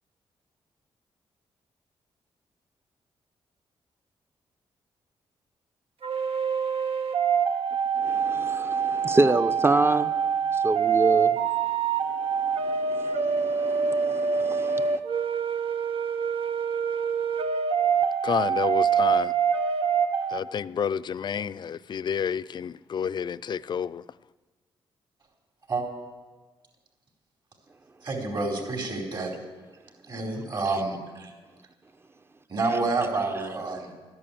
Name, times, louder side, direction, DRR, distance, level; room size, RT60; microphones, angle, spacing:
sound 1, 6.0-20.4, right 6 dB, 75° right, 1.0 m, -25 dB
voice 1, 8.0-10.1 10.5-11.4 12.7-15.0, right 2 dB, 25° right, 0.7 m, -27 dB
voice 2, 18.2-19.3 20.3-24.0, left 7 dB, 50° left, 0.4 m, -29 dB
voice 3, 28.0-29.3 30.1-31.3 32.5-33.9, right 3 dB, 50° right, 4.4 m, -28 dB
13.0 x 11.0 x 8.7 m
cardioid pair, 90°, 10 cm